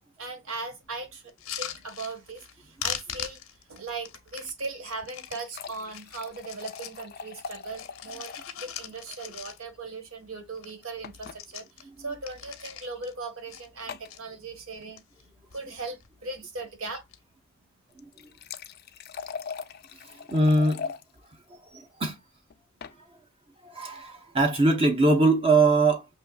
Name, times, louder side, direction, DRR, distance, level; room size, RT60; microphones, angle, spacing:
voice 1, 0.2-3.4 3.7-15.0 15.5-17.0, right 3 dB, 80° right, 1.4 m, -38 dB
sound 1, 1.3-2.5 2.8-5.4 5.9-7.0 7.4-9.9 10.2-10.3 10.5-10.8 11.1-13.1 13.5-14.2 14.7-15.2 15.5-16.1 16.9-17.2, left 10 dB, 85° left, 0.8 m, -40 dB
sound 2, 4.9-8.6 8.9-9.0 9.2-9.3 11.0-11.4 12.4-12.5 13.9-14.2 17.9-21.0 22.5-23.0, left 6 dB, 50° left, 0.4 m, -41 dB
voice 2, 11.8-12.1 18.2-18.3 20.0-20.9 21.5-22.2 23.6-26.1, right 2 dB, 25° right, 0.6 m, -23 dB
5.9 x 3.0 x 2.2 m
head